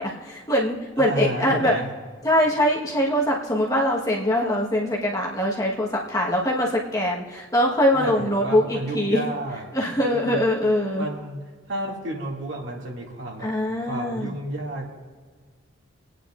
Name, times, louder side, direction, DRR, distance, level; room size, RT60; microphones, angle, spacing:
voice 1, 0.0-1.7 2.2-9.2 9.7-11.1 13.4-14.4, left 1 dB, 15° left, -4 dB, 1.3 m, -23 dB
voice 2, 1.0-1.9 7.9-9.6 10.0-10.5 11.0-11.4 11.7-13.5 13.8-14.9, right 1 dB, 70° right, -2 dB, 2.3 m, -31 dB
27.0 x 9.2 x 2.5 m, 1.5 s
head